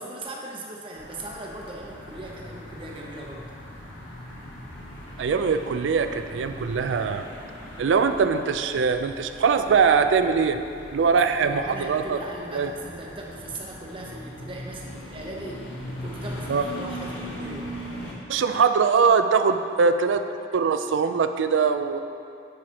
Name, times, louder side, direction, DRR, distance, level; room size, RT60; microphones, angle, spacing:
voice 1, 0.0-3.5 11.1-15.7 16.0-17.7, right 1 dB, 30° right, -1 dB, 0.8 m, -39 dB
sound 1, 0.9-18.1, equal, 85° left, 1.2 m, -40 dB
voice 2, 5.2-7.2 7.8-10.6 10.9-12.2 12.5-12.7 16.5-16.6 18.3-20.2 20.5-22.0, right 5 dB, 90° right, 9 dB, 0.4 m, -22 dB
10.0 x 4.8 x 2.9 m, 2.5 s
head